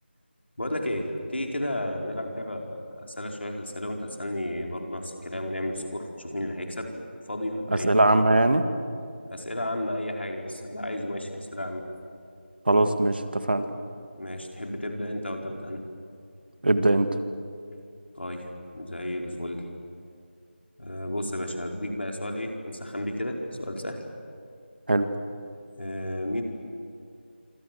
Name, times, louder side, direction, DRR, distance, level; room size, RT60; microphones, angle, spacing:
voice 1, 0.6-6.9 7.3-7.9 9.2-11.8 14.1-15.8 18.2-18.5 18.7-19.6 20.8-24.0 25.8-26.4, left 1 dB, 70° left, 2 dB, 4.7 m, -32 dB
voice 2, 7.7-8.6 12.7-13.7 16.6-17.2 24.9-25.1, right 2 dB, 55° right, 8 dB, 1.9 m, -21 dB
26.5 x 26.0 x 7.8 m, 2.4 s
figure-of-eight pair, 170°, 6 cm